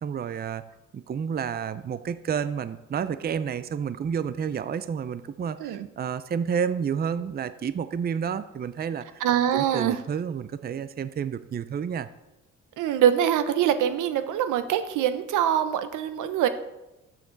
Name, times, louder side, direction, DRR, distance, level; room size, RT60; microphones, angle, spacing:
voice 1, 0.0-0.6 0.9-9.2 9.5-12.1, right 7 dB, 30° right, 14 dB, 0.5 m, -30 dB
voice 2, 9.2-10.0 12.8-16.5, right 10 dB, 90° right, 10 dB, 0.9 m, -24 dB
13.0 x 7.5 x 4.0 m, 0.99 s
cardioid pair, 90°, 30 cm